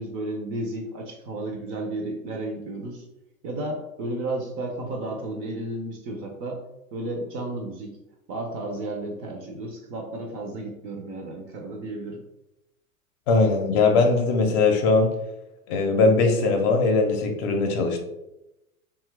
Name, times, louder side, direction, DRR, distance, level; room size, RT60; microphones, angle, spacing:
voice 1, 0.0-3.0 3.4-6.6 6.9-8.0 8.3-12.2, right 2 dB, 30° right, 1 dB, 0.5 m, -33 dB
voice 2, 13.3-15.1 15.7-18.0, left 3 dB, 45° left, 4 dB, 0.6 m, -20 dB
2.7 x 2.3 x 3.2 m, 0.90 s
hypercardioid pair, 105°, 43 cm